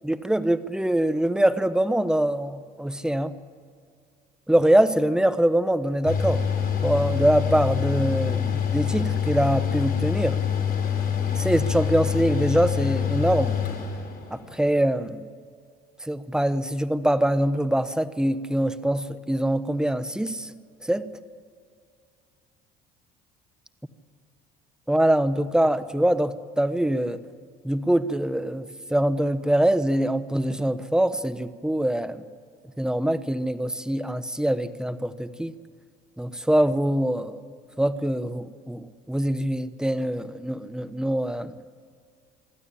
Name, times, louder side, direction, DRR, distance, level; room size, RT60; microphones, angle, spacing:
voice 1, 0.0-3.4 4.5-6.4 6.8-10.4 11.4-13.5 14.3-15.3 16.1-20.5 20.9-21.1 24.9-27.2 27.6-32.2 32.8-35.5 36.2-37.4 37.8-41.5, right 1 dB, 5° right, 13 dB, 1.1 m, -24 dB
Mechanical fan, 6.1-14.5, left 8 dB, 50° left, 4.2 m, -26 dB
25.5 x 12.5 x 8.6 m, 2.1 s
supercardioid pair, 75°, 20 cm